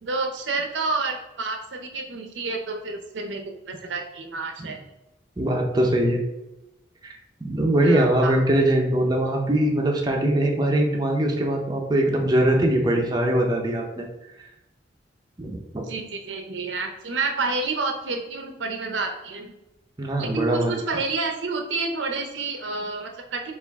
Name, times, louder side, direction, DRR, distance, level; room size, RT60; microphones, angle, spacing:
voice 1, 0.0-4.8 7.8-8.4 15.9-19.5 20.2-23.5, right 3 dB, 80° right, 4 dB, 0.6 m, -29 dB
voice 2, 5.4-6.2 7.0-7.2 7.4-14.0 15.4-15.8 20.0-20.8, right 1 dB, 20° right, 0 dB, 0.5 m, -22 dB
4.5 x 2.5 x 3.4 m, 0.95 s
head